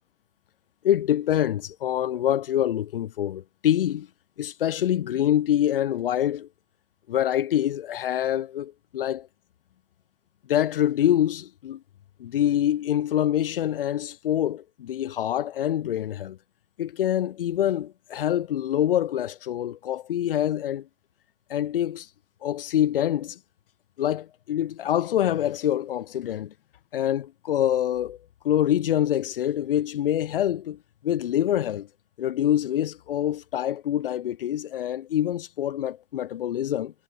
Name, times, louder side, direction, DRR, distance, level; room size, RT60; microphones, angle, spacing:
voice 1, 0.8-4.1 4.4-6.5 7.1-9.3 10.5-11.8 12.2-16.4 16.8-20.9 21.5-22.1 22.4-23.4 24.0-26.5 26.9-28.2 28.4-30.8 31.0-31.9 32.2-36.9, left 11 dB, 55° left, 7.7 m, -25 dB
hypercardioid pair, 165°, 33 cm